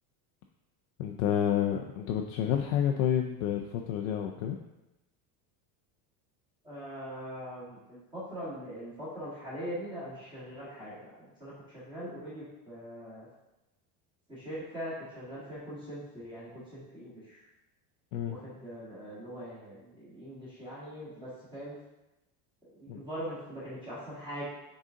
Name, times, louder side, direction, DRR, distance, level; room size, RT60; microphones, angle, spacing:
voice 1, 1.0-4.6 18.1-18.4 22.9-23.0, left 9 dB, 65° left, 2 dB, 0.6 m, -29 dB
voice 2, 6.6-11.1 11.4-13.3 14.3-17.5 18.3-21.8 22.7-24.4, equal, 10° right, -10 dB, 1.8 m, -42 dB
6.3 x 4.0 x 3.8 m, 0.96 s
cardioid pair, 175°, 46 cm